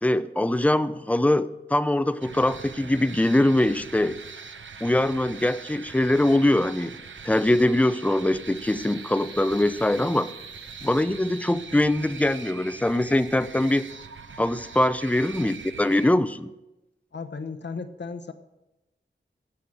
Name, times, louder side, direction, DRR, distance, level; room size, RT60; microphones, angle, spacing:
voice 1, 0.0-4.2 4.8-6.9 7.2-10.3 10.8-13.8 14.4-16.5, left 1 dB, 5° left, 14 dB, 0.5 m, -22 dB
sound 1, 2.2-16.1, right 5 dB, 85° right, 0.8 m, -42 dB
sound 2, 8.0-12.0, right 4 dB, 45° right, 3.0 m, -51 dB
voice 2, 17.1-18.3, left 4 dB, 65° left, 9 dB, 1.0 m, -35 dB
15.0 x 5.7 x 7.7 m, 0.97 s
wide cardioid pair, 85°, 19 cm